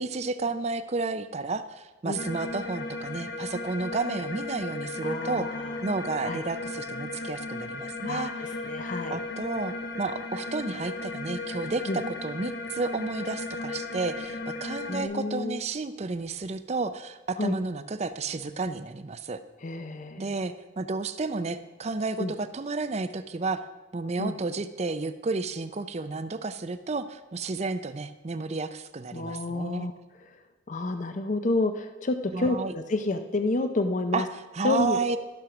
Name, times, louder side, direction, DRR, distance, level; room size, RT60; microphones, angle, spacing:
voice 1, 0.0-5.5 5.8-8.3 9.1-19.4 20.2-23.6 23.9-29.9 32.3-32.7 34.1-35.2, right 3 dB, 35° right, 12 dB, 0.5 m, -31 dB
sound 1, 2.1-15.0, left 2 dB, 60° left, 1.0 m, -36 dB
voice 2, 5.0-5.8 6.2-6.4 8.0-9.2 11.9-12.0 14.9-15.6 17.4-17.5 19.6-20.3 22.2-22.3 24.2-24.4 29.1-29.9 30.7-34.3 34.6-35.0, left 2 dB, 40° left, 8 dB, 0.5 m, -29 dB
13.0 x 6.4 x 5.9 m, 1.2 s
head